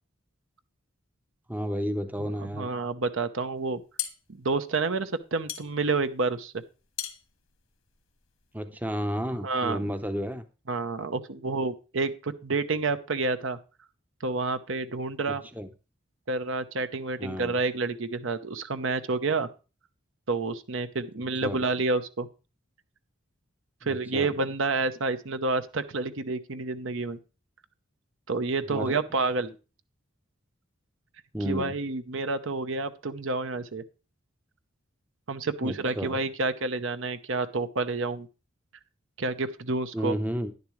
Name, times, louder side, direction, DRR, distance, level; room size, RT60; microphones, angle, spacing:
voice 1, 1.5-2.7 8.5-10.4 15.3-15.7 17.2-17.6 21.4-21.6 23.8-24.3 28.7-29.0 31.3-31.7 35.6-36.2 39.9-40.5, equal, 10° right, 9 dB, 0.6 m, -32 dB
voice 2, 2.2-3.8 4.3-6.5 9.4-9.9 10.7-13.6 14.2-15.4 16.3-19.5 20.3-22.3 23.8-27.2 28.3-29.5 31.4-33.8 35.3-38.3 39.2-40.2, right 3 dB, 70° right, 10 dB, 0.8 m, -29 dB
sound 1, 3.6-8.5, left 12 dB, 80° left, 1.5 m, -39 dB
10.5 x 10.5 x 3.2 m, 0.32 s
head